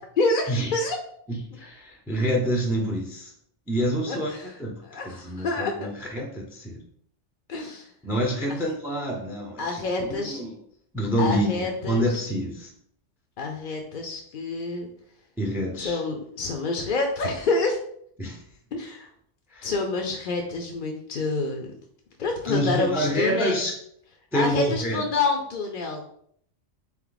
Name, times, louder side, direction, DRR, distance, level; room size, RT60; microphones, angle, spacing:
voice 1, 0.2-1.0 4.1-4.5 4.8-5.7 7.5-7.9 9.6-10.4 11.2-12.3 13.4-14.9 15.8-17.8 18.7-19.1 19.6-21.7 22.2-23.7 24.3-26.0, left 3 dB, 55° left, 2 dB, 0.6 m, -27 dB
voice 2, 1.3-3.3 3.7-6.8 8.0-10.5 10.9-12.7 15.4-16.0 18.2-18.4 19.5-19.7 22.5-23.7 24.3-25.0, equal, 5° right, 1 dB, 0.4 m, -27 dB
3.7 x 3.1 x 3.9 m, 0.64 s
omnidirectional pair, 1.2 m